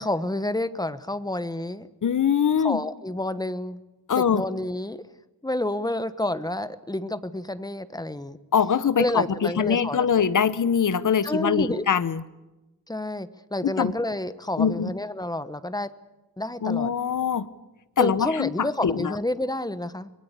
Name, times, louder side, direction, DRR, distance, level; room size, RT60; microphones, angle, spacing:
voice 1, 0.0-1.9 2.6-3.8 4.2-5.0 5.4-8.4 9.0-10.1 11.2-11.9 12.9-15.9 16.4-16.9 18.0-20.1, left 1 dB, 10° left, 13 dB, 1.1 m, -29 dB
voice 2, 2.0-2.8 4.1-4.4 8.5-12.2 13.6-13.9 14.6-14.9 16.6-17.5 18.0-19.1, left 7 dB, 55° left, 16 dB, 1.2 m, -23 dB
24.0 x 22.0 x 8.3 m, 1.1 s
wide cardioid pair, 120°, 36 cm